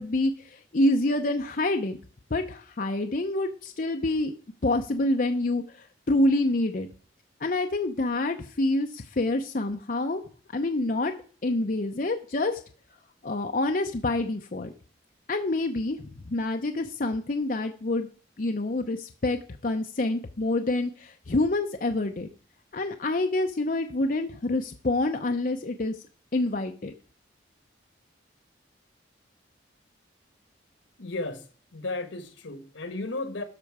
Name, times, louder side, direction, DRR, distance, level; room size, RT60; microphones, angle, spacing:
voice 1, 0.0-2.0 2.3-4.3 4.6-6.9 7.4-10.2 10.5-11.1 11.4-12.6 13.2-14.7 15.3-18.1 18.4-22.3 22.7-25.9 26.3-26.9, left 2 dB, 45° left, 5 dB, 0.6 m, -27 dB
voice 2, 31.0-33.4, left 2 dB, 80° left, 10 dB, 1.3 m, -34 dB
12.5 x 5.7 x 4.8 m, 0.41 s
head